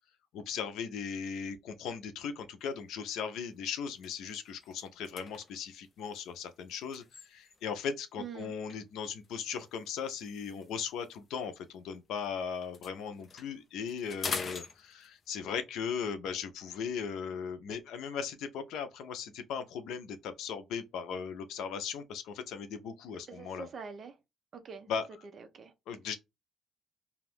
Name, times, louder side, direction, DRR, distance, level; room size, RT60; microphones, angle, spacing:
voice 1, 0.3-23.7 24.9-25.1 25.9-26.1, left 6 dB, 80° left, 0.6 m, -38 dB
sound 1, 2.7-3.0 3.4-3.5 3.9-7.8 8.7-12.3 12.5-15.4, left 4 dB, 30° left, 0.5 m, -45 dB
voice 2, 8.2-8.5 23.3-24.2 24.5-24.9 25.3-25.7, right 6 dB, 40° right, 0.6 m, -45 dB
2.6 x 2.4 x 3.3 m
cardioid pair, 165°, 0 cm